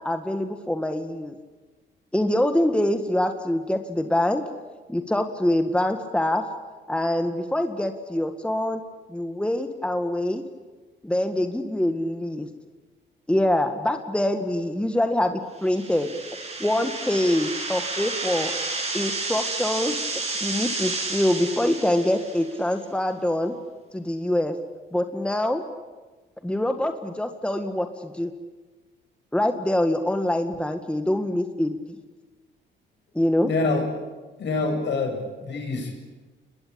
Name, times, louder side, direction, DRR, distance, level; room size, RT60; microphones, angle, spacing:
voice 1, 0.0-1.4 2.1-4.4 4.9-6.4 6.9-8.8 9.1-10.4 11.0-12.5 13.3-16.1 16.6-18.6 18.9-20.0 20.4-23.5 23.9-24.6 24.9-25.6 26.4-28.3 29.3-31.7 33.1-33.5, left 1 dB, 5° left, 6 dB, 1.8 m, -24 dB
sound 1, 15.6-22.6, right 3 dB, 35° right, 7.1 m, -31 dB
voice 2, 33.4-33.9 34.4-36.0, left 3 dB, 65° left, 3 dB, 7.6 m, -26 dB
29.0 x 21.5 x 8.8 m, 1.3 s
cardioid pair, 90°, 20 cm